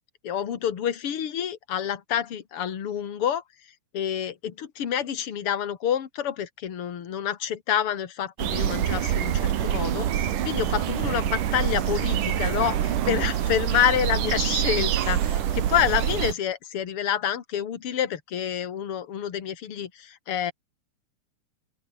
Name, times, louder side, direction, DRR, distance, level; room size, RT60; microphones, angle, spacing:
voice 1, 0.2-3.4 3.9-20.5, left 9 dB, 45° left, 2.4 m, -28 dB
sound 1, 8.4-16.3, right 10 dB, 60° right, 3.0 m, -26 dB
open air
omnidirectional pair, 4.5 m